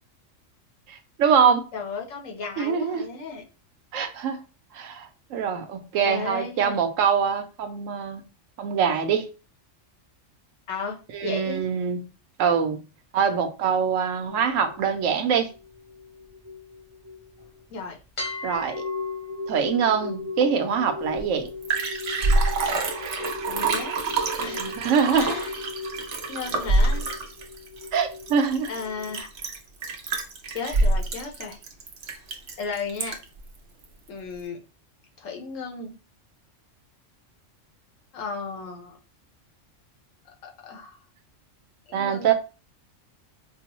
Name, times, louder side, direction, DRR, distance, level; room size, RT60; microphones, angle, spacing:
voice 1, 0.9-1.7 2.6-3.1 3.9-4.4 4.7-8.2 8.6-9.3 11.1-12.0 12.4-12.8 13.1-15.5 18.4-18.8 19.5-21.5 24.5-25.3 27.9-28.7 41.9-42.3, right 7 dB, 85° right, 1.0 m, -24 dB
voice 2, 1.7-3.4 6.0-6.8 10.7-11.6 17.7-18.0 23.5-24.0 24.4-24.7 25.1-25.6 26.3-27.1 28.7-29.3 30.5-31.6 32.6-33.2 34.1-34.6 35.2-35.9 38.1-39.0 40.4-41.0 41.9-42.3, left 5 dB, 85° left, 1.2 m, -34 dB
sound 1, 14.3-17.6 18.2-29.2, left 4 dB, 30° left, 0.6 m, -38 dB
Liquid, 21.2-21.3 21.5-33.4 33.8-33.9, right 2 dB, 65° right, 1.0 m, -26 dB
4.5 x 2.1 x 2.9 m
omnidirectional pair, 1.3 m